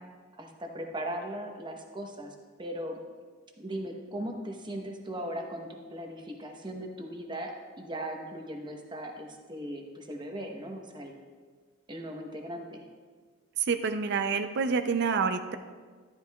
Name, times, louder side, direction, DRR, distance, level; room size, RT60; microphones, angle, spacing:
voice 1, 0.4-3.0 3.6-11.2 11.9-12.8, right 1 dB, 20° right, 3 dB, 0.9 m, -38 dB
voice 2, 13.6-15.6, right 5 dB, 50° right, 8 dB, 0.4 m, -28 dB
12.0 x 11.0 x 2.3 m, 1.5 s
head